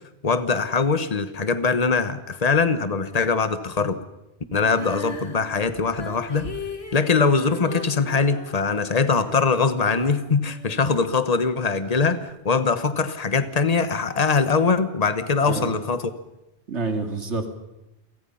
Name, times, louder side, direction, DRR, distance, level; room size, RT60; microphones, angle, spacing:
voice 1, 0.2-4.0 4.5-6.5 6.9-16.1, left 4 dB, 35° left, 11 dB, 1.3 m, -22 dB
Female singing, 4.6-11.7 12.3-12.4, left 4 dB, 70° left, 2.4 m, -39 dB
voice 2, 15.4-15.7 16.7-17.5, right 3 dB, 85° right, 6 dB, 2.8 m, -28 dB
30.0 x 23.0 x 5.8 m, 0.94 s
omnidirectional pair, 1.1 m